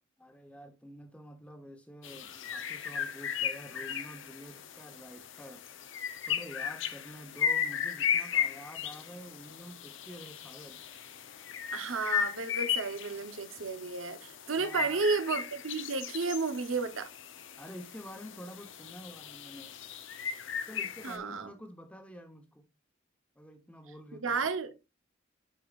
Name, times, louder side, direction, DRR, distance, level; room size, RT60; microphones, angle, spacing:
voice 1, 0.2-5.6 6.3-10.8 13.6-13.7 14.6-15.0 17.6-19.8 20.7-22.6 23.4-24.4, equal, 5° left, 1.1 m, -48 dB
sound 1, 2.0-21.2, left 8 dB, 65° left, 0.9 m, -36 dB
voice 2, 11.7-17.1 21.0-21.5 24.2-24.7, right 4 dB, 80° right, 1.1 m, -32 dB
12.0 x 4.7 x 2.5 m
head